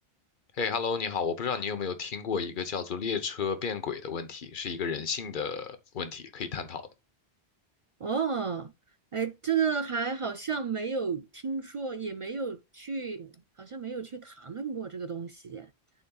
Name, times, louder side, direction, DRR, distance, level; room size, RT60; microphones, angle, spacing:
voice 1, 0.5-6.9, left 6 dB, 55° left, 1.1 m, -32 dB
voice 2, 8.0-8.7 9.1-15.7, right 5 dB, 55° right, 0.3 m, -32 dB
12.5 x 4.2 x 2.3 m
omnidirectional pair, 1.0 m